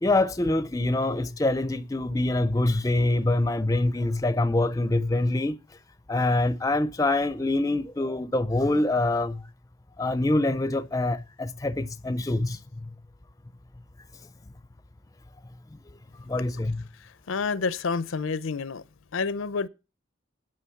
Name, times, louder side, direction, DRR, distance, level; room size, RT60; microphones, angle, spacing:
voice 1, 0.0-5.6 6.1-9.5 10.0-12.9 16.3-16.8, left 2 dB, 15° left, 0.4 m, -25 dB
voice 2, 17.3-18.8 19.1-19.7, left 4 dB, 85° left, 0.6 m, -28 dB
9.9 x 6.0 x 7.0 m
head